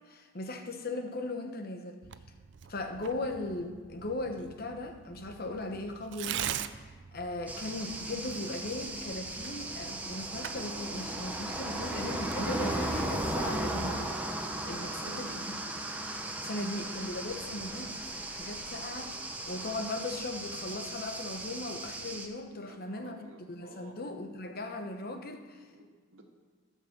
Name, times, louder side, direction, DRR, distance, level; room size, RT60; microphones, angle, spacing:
voice 1, 0.1-2.0 2.7-15.4 16.2-17.9 18.3-23.2 23.5-25.7, left 2 dB, 50° left, 5 dB, 1.0 m, -38 dB
Tearing, 2.0-13.6, right 10 dB, 60° right, 0.4 m, -44 dB
sound 1, 7.5-22.3, right 1 dB, 10° right, 0.8 m, -36 dB
voice 2, 14.8-15.5 17.6-17.9 22.6-24.0 24.5-24.6 25.7-26.2, right 2 dB, 90° right, 2 dB, 1.7 m, -54 dB
13.5 x 5.6 x 7.3 m, 1.5 s
head